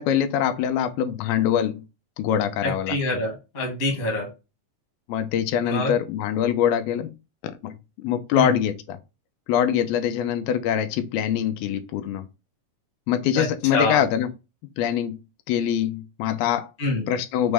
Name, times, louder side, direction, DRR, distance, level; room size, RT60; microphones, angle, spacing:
voice 1, 0.0-1.8 2.2-3.0 5.1-7.1 7.6-9.0 9.5-12.2 13.1-14.3 14.8-15.2 15.5-16.7 17.1-17.5, left 9 dB, 85° left, 2.4 m, -24 dB
voice 2, 2.6-4.3 5.7-5.9 8.3-8.5 13.3-14.0 16.8-17.0, left 2 dB, 55° left, 0.8 m, -26 dB
6.0 x 2.1 x 3.3 m
omnidirectional pair, 4.2 m